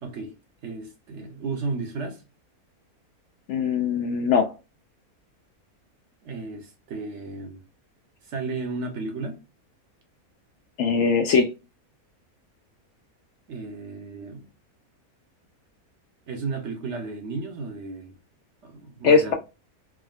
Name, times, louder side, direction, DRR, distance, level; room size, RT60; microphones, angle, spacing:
voice 1, 0.0-0.3 0.6-2.2 6.2-7.6 8.2-9.4 13.5-14.5 16.3-18.2 18.6-19.3, right 3 dB, 60° right, 0.9 m, -33 dB
voice 2, 3.5-4.5 10.8-11.5 19.0-19.3, left 5 dB, 65° left, 0.8 m, -20 dB
3.5 x 2.2 x 2.2 m
omnidirectional pair, 1.5 m